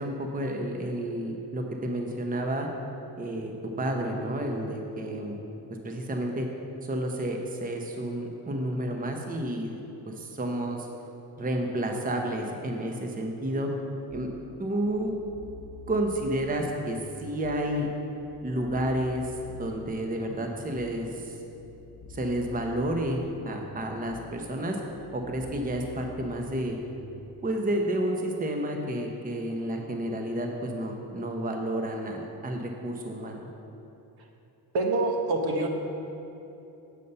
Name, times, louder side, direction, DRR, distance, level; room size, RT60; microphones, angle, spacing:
voice 1, 0.0-2.7 3.2-5.4 5.8-6.5 6.8-9.8 10.1-10.9 11.4-13.7 14.1-14.3 14.6-15.1 15.9-17.9 18.4-21.3 22.1-23.2 23.5-24.8 25.1-26.8 27.4-33.4, right 1 dB, 20° right, 2 dB, 0.8 m, -30 dB
sound 1, 14.1-27.4, left 4 dB, 40° left, 0.8 m, -48 dB
voice 2, 34.7-35.7, right 2 dB, 65° right, 2 dB, 1.1 m, -25 dB
8.3 x 5.5 x 5.4 m, 3.0 s
cardioid pair, 100°, 41 cm